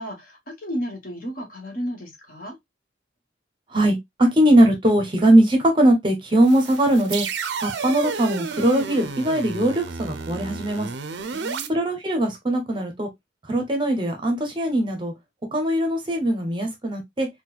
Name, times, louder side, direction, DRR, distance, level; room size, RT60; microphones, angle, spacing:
voice 1, 0.0-2.6 11.3-11.8, equal, 45° left, 1.2 m, -33 dB
voice 2, 3.7-7.3 7.6-10.9 11.7-13.1 13.5-15.1 15.5-17.3, right 1 dB, 25° right, 0.7 m, -20 dB
sound 1, 6.4-11.7, right 5 dB, 65° right, 0.5 m, -31 dB
4.4 x 2.2 x 2.3 m
head